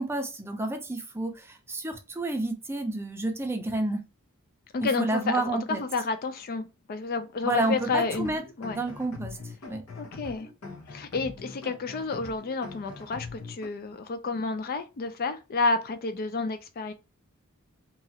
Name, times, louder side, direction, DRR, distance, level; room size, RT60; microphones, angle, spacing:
voice 1, 0.0-1.3 1.7-4.0 4.8-5.8 7.4-8.4 8.7-9.3 9.7-9.8, right 2 dB, 10° right, 0.5 m, -29 dB
voice 2, 4.7-8.8 10.0-10.5 10.9-16.9, left 3 dB, 45° left, 0.4 m, -30 dB
sound 1, 7.5-13.7, left 3 dB, 75° left, 0.8 m, -43 dB
3.0 x 2.4 x 2.7 m
head